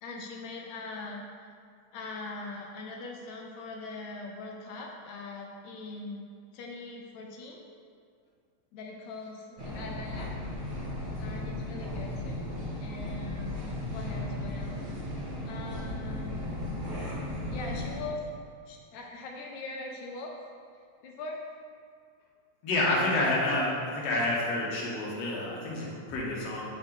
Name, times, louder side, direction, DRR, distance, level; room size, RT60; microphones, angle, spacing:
voice 1, 0.0-1.2 1.9-6.2 6.5-7.7 8.7-10.3 11.2-12.5 12.8-14.8 15.5-16.5 17.5-18.3 18.7-20.4 21.0-21.4, left 3 dB, 80° left, 0 dB, 1.9 m, -41 dB
sound 1, 9.6-18.0, left 1 dB, 65° right, 0.5 m, -36 dB
voice 2, 22.6-26.6, left 2 dB, 65° left, -4 dB, 2.2 m, -29 dB
8.8 x 4.3 x 3.7 m, 2.2 s
omnidirectional pair, 3.3 m